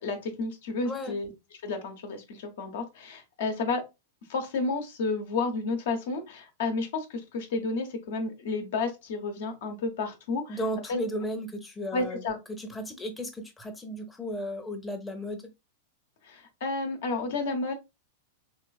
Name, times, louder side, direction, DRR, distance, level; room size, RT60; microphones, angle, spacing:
voice 1, 0.0-1.3 1.6-3.8 4.3-10.6 10.9-11.0 11.9-12.4 16.2-17.7, left 3 dB, 65° left, 5 dB, 0.9 m, -31 dB
voice 2, 10.5-12.2 12.5-15.4, equal, 10° left, 3 dB, 0.7 m, -34 dB
3.2 x 3.0 x 2.3 m, 0.24 s
hypercardioid pair, 100°, 0 cm